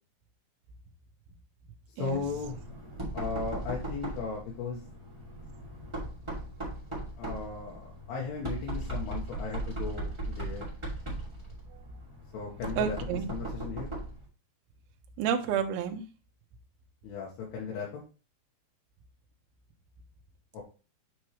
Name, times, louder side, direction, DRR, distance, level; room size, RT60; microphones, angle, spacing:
voice 1, 1.9-2.6 3.1-4.8 7.2-10.6 12.3-12.9 13.3-13.9 17.0-18.0 20.5-20.6, left 5 dB, 80° left, -3 dB, 3.3 m, -36 dB
Knock, 2.0-14.2, right 1 dB, 10° right, 1.3 m, -38 dB
voice 2, 12.8-13.3 15.2-16.0, right 8 dB, 80° right, 5 dB, 2.5 m, -30 dB
8.7 x 4.6 x 3.1 m, 0.35 s
omnidirectional pair, 4.7 m